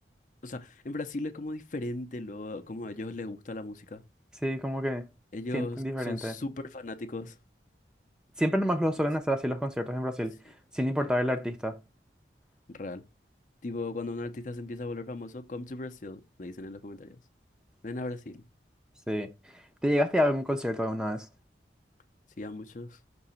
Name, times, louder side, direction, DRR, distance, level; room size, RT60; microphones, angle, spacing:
voice 1, 0.4-4.0 5.3-7.3 11.0-11.1 12.7-13.0 13.6-17.2 17.8-18.4 22.4-23.0, left 2 dB, 45° left, 0.6 m, -37 dB
voice 2, 4.4-5.1 5.5-6.3 8.4-10.3 10.7-11.7 19.1-21.3, equal, 5° right, 0.5 m, -28 dB
6.1 x 2.9 x 5.5 m
head